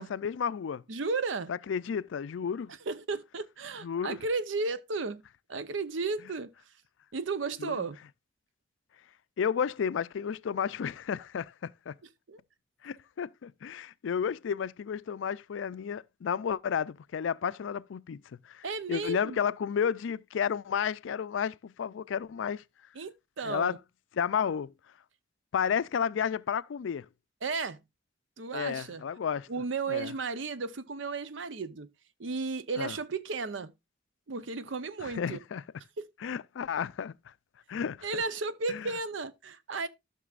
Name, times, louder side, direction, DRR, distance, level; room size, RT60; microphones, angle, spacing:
voice 1, 0.0-0.8 1.5-2.7 3.8-4.2 7.6-7.9 9.4-11.9 12.8-22.6 23.4-23.8 24.1-24.7 25.5-27.1 28.5-29.5 29.9-30.1 32.8-33.0 35.0-35.6 36.2-37.1 37.7-38.2 38.7-38.9, left 7 dB, 85° left, 0.4 m, -32 dB
voice 2, 0.9-1.5 2.9-5.2 5.5-6.5 7.1-8.0 12.3-12.4 18.6-19.4 22.9-23.8 27.4-27.8 28.4-29.0 29.5-31.9 32.2-33.7 34.3-35.4 36.0-36.1 38.0-39.9, right 4 dB, 90° right, 0.7 m, -34 dB
14.0 x 6.0 x 2.4 m
head